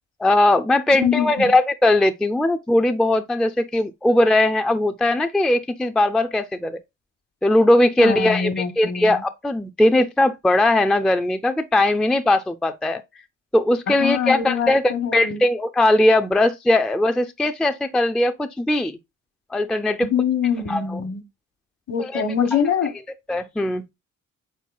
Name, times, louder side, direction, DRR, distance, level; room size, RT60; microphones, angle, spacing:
voice 1, 0.2-6.8 7.4-13.0 13.5-19.0 19.5-20.1 20.7-21.0 22.0-22.2 23.3-23.8, left 1 dB, ahead, 0.3 m, -19 dB
voice 2, 1.0-1.5 8.0-9.2 14.0-15.4 20.1-21.2 21.9-22.9, left 7 dB, 60° left, 1.1 m, -24 dB
4.4 x 4.0 x 2.3 m
cardioid pair, 90°, 30 cm